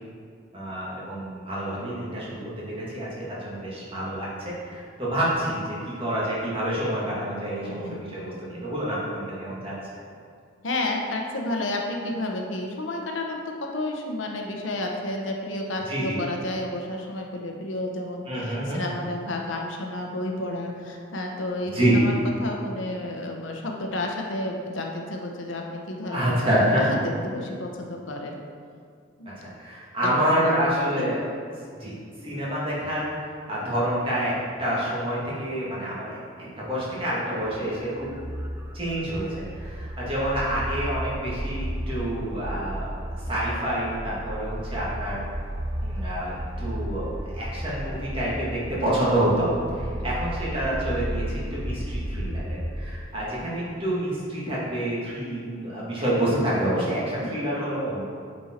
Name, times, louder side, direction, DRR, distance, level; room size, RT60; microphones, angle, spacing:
voice 1, 0.5-2.4 2.7-9.8 15.8-16.2 18.3-18.8 21.7-22.1 26.1-26.8 29.2-31.2 31.8-31.9 32.2-34.3 34.6-38.1 38.7-39.3 39.5-42.9 43.3-45.2 45.8-49.5 49.7-58.0, right 1 dB, 30° right, -7 dB, 1.9 m, -27 dB
voice 2, 7.6-8.0 10.6-26.3 26.6-28.4 29.2-29.4 30.0-30.7 31.0-31.2 49.8-50.1 57.3-57.5, left 1 dB, 85° left, 1 dB, 1.0 m, -31 dB
sound 1, 37.4-53.0, equal, 10° right, 0.5 m, -33 dB
8.6 x 4.5 x 4.4 m, 2.2 s
head